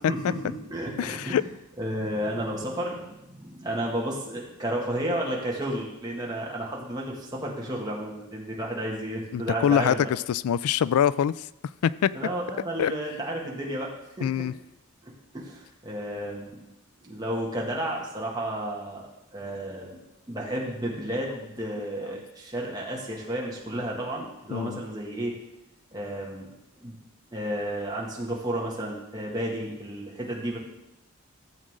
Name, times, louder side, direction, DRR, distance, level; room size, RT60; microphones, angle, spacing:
voice 1, 0.1-1.4 1.8-10.1 12.1-13.9 14.2-14.5 15.0-16.6 17.0-19.0 19.3-20.0 20.3-25.4 25.9-26.5 26.8-27.0 27.3-30.6, right 1 dB, 20° right, -3 dB, 2.1 m, -32 dB
voice 2, 1.0-1.4 9.3-11.5 11.8-12.1 12.8-12.9 14.2-14.5 21.8-21.9 24.5-24.8, left 9 dB, 85° left, 19 dB, 0.3 m, -24 dB
14.0 x 7.5 x 3.7 m, 0.89 s
head